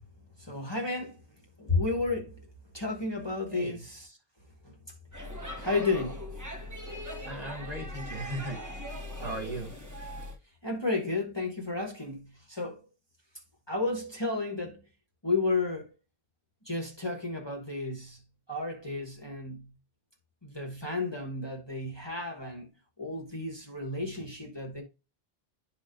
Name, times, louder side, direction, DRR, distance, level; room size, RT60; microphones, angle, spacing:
voice 1, 0.4-1.2 1.6-2.5 2.7-4.2 4.6-4.8 5.6-6.3 9.2-9.4 10.6-12.8 13.7-14.8 15.2-15.9 16.6-18.2 18.5-19.7 20.4-22.7 23.0-24.8, left 3 dB, 25° left, 1.2 m, -32 dB
voice 2, 3.5-3.8 7.2-8.6 9.2-9.7, right 1 dB, 40° right, 1.6 m, -37 dB
Speech / Shout / Subway metro underground, 5.1-10.4, left 1 dB, 20° right, 1.1 m, -40 dB
11.5 x 4.2 x 2.5 m
omnidirectional pair, 1.0 m